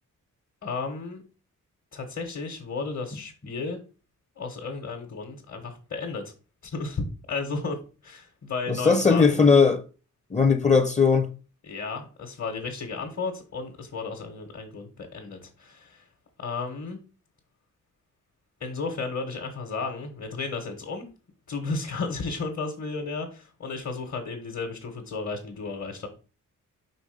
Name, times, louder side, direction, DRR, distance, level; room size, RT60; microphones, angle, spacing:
voice 1, 0.6-1.2 1.9-3.8 4.4-6.3 6.6-7.8 8.0-9.4 11.6-16.0 16.4-17.0 18.6-21.0 21.5-26.1, left 4 dB, 55° left, 1.4 m, -33 dB
voice 2, 8.7-9.8 10.3-11.3, left 5 dB, 20° left, 0.7 m, -19 dB
5.2 x 3.7 x 5.0 m
cardioid pair, 105°, 32 cm